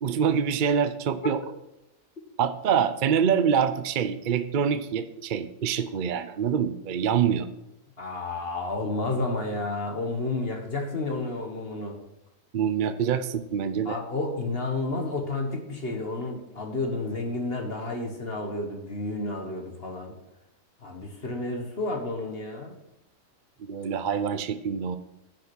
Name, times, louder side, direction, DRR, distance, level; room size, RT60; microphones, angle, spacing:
voice 1, 0.0-1.4 2.4-7.5 12.5-14.0 23.6-25.0, right 7 dB, 55° right, 11 dB, 0.6 m, -25 dB
voice 2, 8.0-12.0 13.8-20.1 20.8-22.8, left 2 dB, 45° left, 2 dB, 1.6 m, -31 dB
10.5 x 6.0 x 6.1 m, 0.89 s
omnidirectional pair, 1.4 m